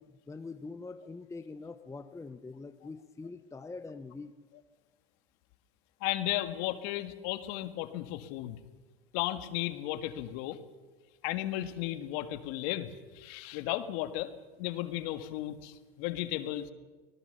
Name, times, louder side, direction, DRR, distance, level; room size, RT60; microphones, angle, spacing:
voice 1, 0.0-4.3, left 3 dB, 10° left, 9 dB, 0.9 m, -44 dB
voice 2, 6.0-8.6 9.1-10.6 11.2-14.3 14.6-16.7, left 14 dB, 55° left, 9 dB, 2.0 m, -34 dB
25.0 x 19.0 x 6.8 m, 1.3 s
hypercardioid pair, 105°, 32 cm